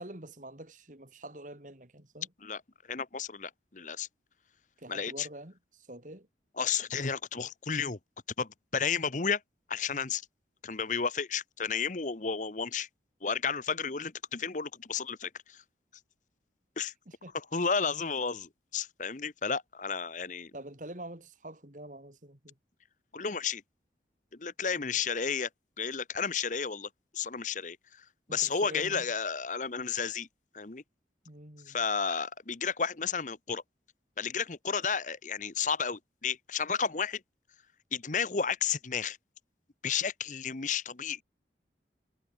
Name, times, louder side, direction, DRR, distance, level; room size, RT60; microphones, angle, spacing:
voice 1, 0.0-2.3 4.8-6.3 17.1-17.3 20.5-22.5 24.8-25.0 28.3-29.1 31.2-31.8, right 1 dB, 45° right, 3.0 m, -46 dB
voice 2, 2.9-4.1 4.9-5.3 6.6-8.0 8.4-9.4 9.7-10.2 10.6-12.9 13.2-15.6 16.8-16.9 17.3-20.5 23.1-23.6 24.3-25.5 25.8-28.0 28.3-30.3 30.5-30.8 31.7-33.6 34.2-37.2 37.9-39.2 39.8-41.2, left 6 dB, 45° left, 1.0 m, -32 dB
head